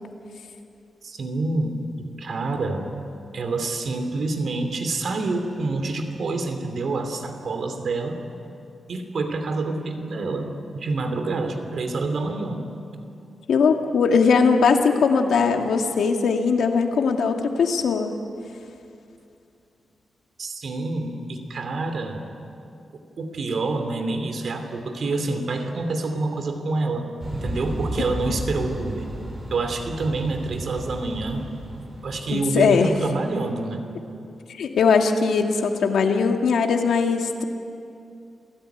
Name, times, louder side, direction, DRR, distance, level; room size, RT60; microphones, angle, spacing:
voice 1, 1.0-2.9 3.3-8.2 8.9-12.6 20.4-22.2 23.2-29.1 29.5-31.5 32.0-33.9, right 3 dB, 55° right, 6 dB, 2.7 m, -27 dB
voice 2, 13.5-18.1 28.3-28.4 32.3-32.9 34.5-37.4, left 5 dB, 85° left, 4 dB, 2.1 m, -20 dB
sound 1, 27.2-33.0, equal, 20° right, 5.6 m, -34 dB
28.5 x 16.5 x 9.3 m, 2.6 s
wide cardioid pair, 155°, 0 cm